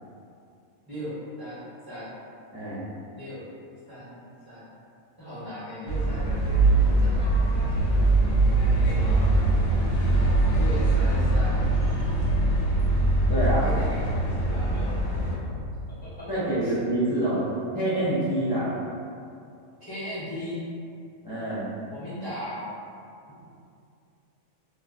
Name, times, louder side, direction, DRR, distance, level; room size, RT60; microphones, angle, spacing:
voice 1, 0.9-2.1 3.1-3.4 3.9-4.7 5.2-8.3 8.7-9.2 10.5-11.6 13.6-15.5 16.0-16.7 19.8-20.7 21.9-22.6, left 1 dB, 20° right, -13 dB, 1.0 m, -38 dB
voice 2, 2.5-2.8 13.3-13.7 16.3-17.4 17.7-18.7 21.2-21.7, right 1 dB, 25° left, -13 dB, 0.5 m, -26 dB
sound 1, 5.9-15.4, right 2 dB, 80° left, 1.0 m, -22 dB
sound 2, 11.2-16.3, equal, 80° right, 1.0 m, -32 dB
3.1 x 2.3 x 2.5 m, 2.5 s
omnidirectional pair, 1.4 m